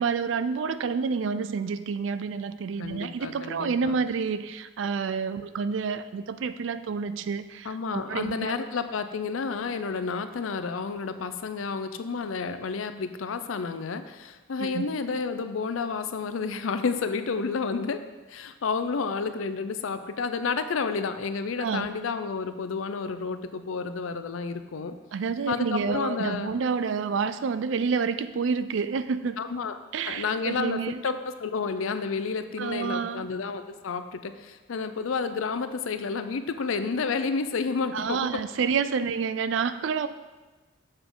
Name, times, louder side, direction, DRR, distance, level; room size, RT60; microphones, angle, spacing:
voice 1, 0.0-8.6 14.6-14.9 21.6-21.9 25.1-29.4 29.9-31.0 32.6-33.3 37.9-40.1, right 5 dB, 65° right, 12 dB, 0.4 m, -29 dB
voice 2, 2.8-4.0 5.3-5.5 7.6-18.0 18.3-25.0 25.5-26.5 29.4-29.8 30.1-38.4, left 5 dB, 85° left, 10 dB, 0.5 m, -30 dB
7.0 x 6.6 x 3.8 m, 1.2 s
head